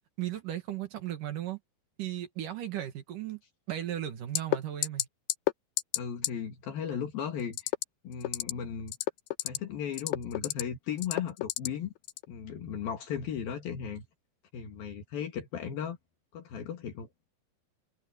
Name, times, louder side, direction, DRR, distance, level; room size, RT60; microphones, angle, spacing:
voice 1, 0.2-1.6 2.0-3.4 3.7-5.1 6.9-7.0, right 12 dB, 65° right, 3.2 m, -36 dB
sound 1, 4.4-4.6 4.8-5.0 5.3-5.5 5.8-6.0 6.2-6.3 7.5-7.8 8.2-8.5 8.9-9.6 9.9-10.6 11.0-11.7 12.1-12.3, left 15 dB, 90° left, 2.8 m, -29 dB
voice 2, 6.0-7.7 8.0-9.0 9.4-11.9 12.3-14.0 14.5-16.0 16.3-17.1, left 8 dB, 70° left, 3.9 m, -36 dB
omnidirectional pair, 4.4 m